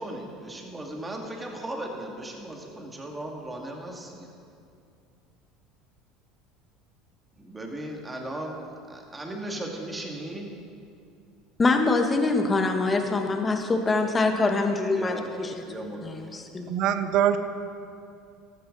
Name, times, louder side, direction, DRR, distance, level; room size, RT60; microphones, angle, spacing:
voice 1, 0.0-4.3 7.4-10.5 14.9-16.6, right 1 dB, 15° right, 1 dB, 2.3 m, -37 dB
voice 2, 11.6-15.5 16.0-16.7, left 3 dB, 25° left, 5 dB, 1.4 m, -24 dB
voice 3, 16.7-17.4, right 10 dB, 60° right, 10 dB, 0.8 m, -23 dB
14.5 x 13.0 x 4.1 m, 2.4 s
supercardioid pair, 95°, 0 cm